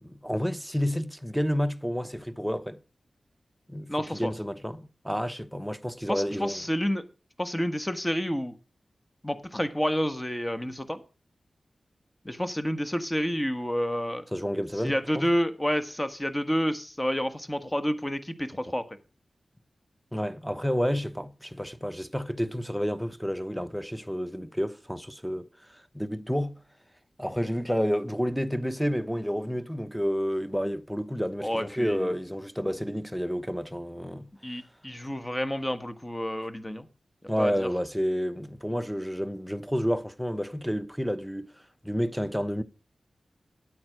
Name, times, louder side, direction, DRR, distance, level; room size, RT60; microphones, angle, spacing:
voice 1, 0.0-2.8 3.7-6.6 14.3-15.3 20.1-26.6 27.2-34.3 37.3-41.5 41.8-42.6, equal, ahead, 1.0 m, -30 dB
voice 2, 3.9-4.3 6.1-7.0 7.4-8.6 9.2-11.0 12.2-14.2 14.8-18.8 31.4-32.1 34.4-36.9 37.4-37.7, equal, 15° left, 1.5 m, -29 dB
9.8 x 8.7 x 4.9 m
cardioid pair, 60°, 0 cm